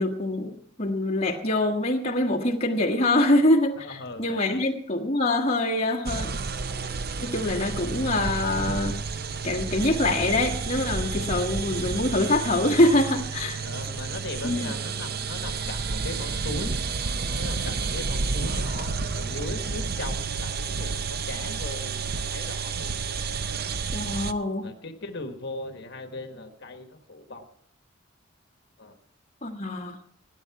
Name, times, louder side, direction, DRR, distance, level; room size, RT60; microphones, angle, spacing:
voice 1, 0.0-6.3 7.2-9.0 9.4-13.6 14.4-14.7 23.9-24.7 29.4-30.0, left 1 dB, 30° left, 0 dB, 1.3 m, -24 dB
voice 2, 3.8-4.6 13.6-16.8 17.3-22.9 24.6-27.5 28.8-29.0, left 2 dB, 55° left, 6 dB, 1.3 m, -38 dB
sound 1, 6.1-24.3, right 4 dB, 45° right, 0.6 m, -30 dB
19.0 x 9.4 x 4.7 m, 0.67 s
head